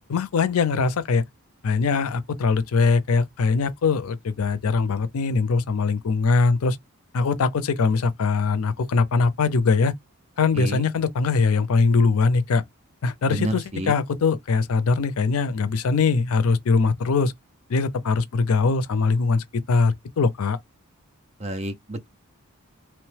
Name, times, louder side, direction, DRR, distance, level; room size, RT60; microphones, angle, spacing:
voice 1, 0.1-1.2 1.6-6.8 7.1-9.9 10.4-12.6 13.0-17.3 17.7-20.6, left 4 dB, 80° left, 0.5 m, -22 dB
voice 2, 10.6-10.9 13.3-13.9 21.4-22.1, right 1 dB, 30° right, 0.6 m, -29 dB
2.9 x 2.1 x 3.2 m
head